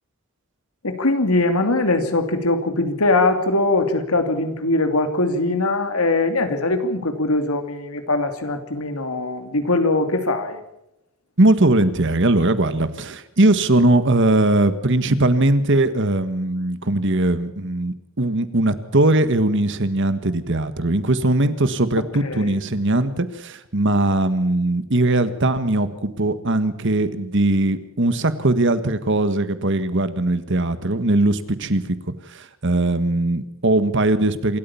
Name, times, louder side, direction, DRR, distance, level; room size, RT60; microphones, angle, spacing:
voice 1, 0.8-10.6 22.2-22.5, left 2 dB, 80° left, 7 dB, 2.8 m, -21 dB
voice 2, 11.4-31.9 32.3-34.6, right 2 dB, 55° right, 12 dB, 1.6 m, -20 dB
27.0 x 13.5 x 7.1 m, 0.85 s
head